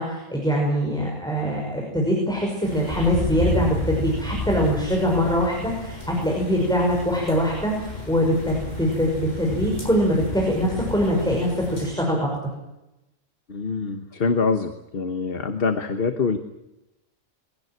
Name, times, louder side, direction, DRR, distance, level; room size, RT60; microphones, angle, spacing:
voice 1, 0.0-12.3, equal, 5° left, -2 dB, 5.7 m, -23 dB
sound 1, 2.6-11.9, left 1 dB, 35° left, 7.5 m, -32 dB
voice 2, 13.5-16.4, left 4 dB, 50° left, 8 dB, 1.4 m, -25 dB
23.0 x 17.5 x 9.2 m, 0.94 s
omnidirectional pair, 1.3 m